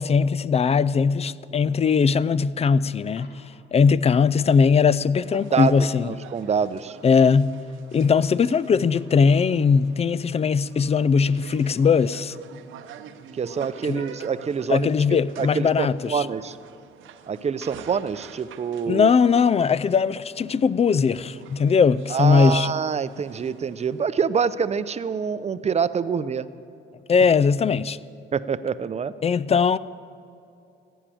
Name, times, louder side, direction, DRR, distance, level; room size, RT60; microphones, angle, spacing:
voice 1, 0.0-3.3 3.7-6.1 7.0-7.5 7.9-12.4 13.9-14.0 14.7-16.3 18.9-22.7 27.1-28.0 29.2-29.8, left 5 dB, 30° left, 0.4 m, -20 dB
Coin (dropping), 3.1-3.9 10.0-10.2, left 2 dB, 55° left, 2.5 m, -53 dB
sound 1, 5.2-24.0, right 8 dB, 80° right, 0.9 m, -47 dB
voice 2, 5.5-7.0 13.3-16.6 17.3-19.1 22.1-26.5 28.3-29.1, right 6 dB, 35° right, 0.6 m, -26 dB
15.0 x 10.0 x 7.7 m
cardioid pair, 90°, 20 cm